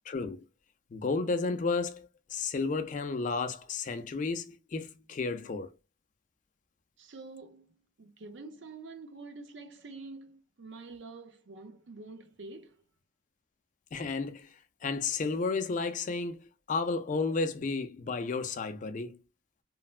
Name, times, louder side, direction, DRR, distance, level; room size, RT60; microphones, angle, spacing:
voice 1, 0.1-0.4 0.9-5.7 13.9-14.5 14.8-19.2, left 4 dB, 40° left, 0.4 m, -32 dB
voice 2, 7.0-12.8, right 3 dB, 70° right, 0.6 m, -47 dB
3.2 x 2.1 x 2.3 m
head